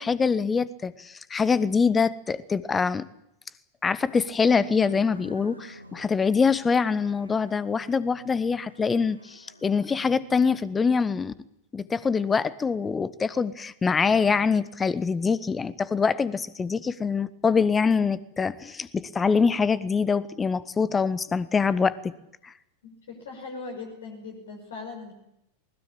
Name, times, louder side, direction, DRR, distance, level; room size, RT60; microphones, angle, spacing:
voice 1, 0.0-3.1 3.8-11.3 11.7-22.1 22.4-22.5, left 5 dB, 15° left, 18 dB, 1.1 m, -24 dB
sound 1, 3.9-10.7, right 1 dB, 90° right, 2.2 m, -49 dB
voice 2, 22.8-25.1, left 4 dB, 65° left, 1 dB, 5.7 m, -39 dB
20.5 x 20.5 x 8.6 m, 0.81 s
figure-of-eight pair, 90°, 0 cm